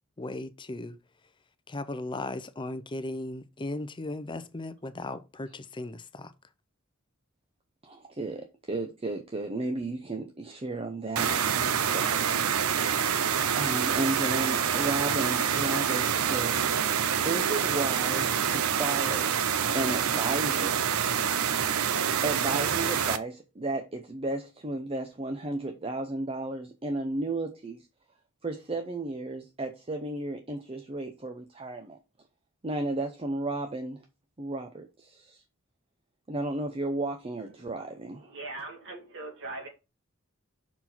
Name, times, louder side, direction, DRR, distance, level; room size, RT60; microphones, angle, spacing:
voice 1, 0.2-1.0 1.7-6.3, left 2 dB, 20° left, 0.6 m, -37 dB
voice 2, 7.8-13.1 13.6-19.3 19.7-20.9 22.2-27.9 28.4-32.0 32.6-34.0 34.4-35.4 36.3-38.4, right 2 dB, 25° right, 0.7 m, -34 dB
sound 1, 11.2-23.2, right 8 dB, 85° right, 0.6 m, -27 dB
voice 3, 38.3-39.7, right 2 dB, 60° right, 2.3 m, -40 dB
5.9 x 4.6 x 4.1 m
head